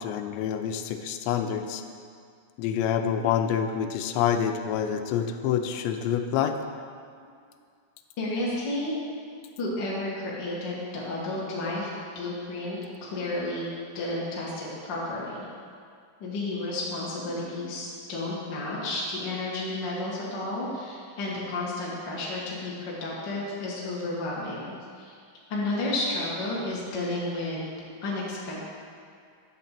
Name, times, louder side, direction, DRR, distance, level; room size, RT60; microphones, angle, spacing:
voice 1, 0.0-1.8 2.6-6.6, left 8 dB, 90° left, 7 dB, 2.8 m, -27 dB
voice 2, 8.2-9.0 9.6-11.9 12.1-13.7 13.9-15.5 16.2-25.2 25.5-27.7 28.0-28.6, left 2 dB, 60° left, -6 dB, 1.1 m, -32 dB
9.9 x 4.1 x 7.4 m, 2.2 s
omnidirectional pair, 4.9 m